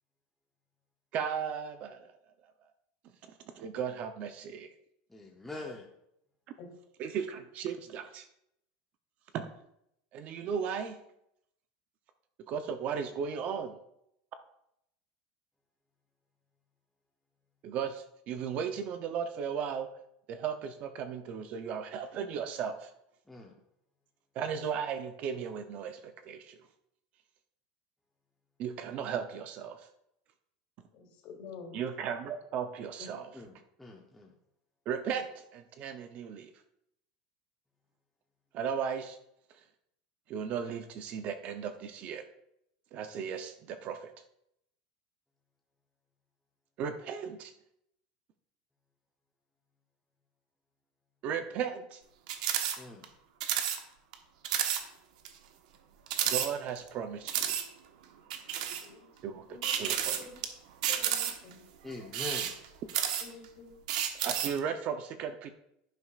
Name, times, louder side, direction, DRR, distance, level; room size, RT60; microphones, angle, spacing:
voice 1, 1.1-2.1 3.2-4.7 7.0-8.3 9.3-9.5 10.1-11.0 12.5-13.7 17.6-19.9 20.3-22.9 24.3-26.6 28.6-29.9 31.7-33.3 34.9-36.5 38.5-39.2 40.3-42.2 42.9-44.1 46.8-47.5 51.2-52.0 56.2-57.6 59.2-60.2 64.2-65.5, right 7 dB, 35° right, 8 dB, 0.6 m, -36 dB
voice 2, 5.1-5.8 23.3-23.5 33.3-33.5 33.8-34.3 52.8-53.0 61.8-62.5, left 2 dB, 5° left, 0 dB, 0.7 m, -43 dB
voice 3, 30.9-31.8 33.0-33.1 58.8-59.1 59.5-59.8 60.2-60.3 60.9-61.7 63.2-63.7, left 5 dB, 45° left, 1 dB, 2.9 m, -48 dB
sound 1, 52.3-52.8 53.0-53.1 53.4-53.8 54.1-54.2 54.4-54.8 55.3-55.4 56.1-56.9 57.3-57.6 58.3-58.9 59.6-60.5 60.8-61.5 62.0-63.5 63.9-64.6, right 9 dB, 75° right, 1.1 m, -31 dB
11.5 x 10.0 x 2.4 m, 0.78 s
supercardioid pair, 165°, 4 cm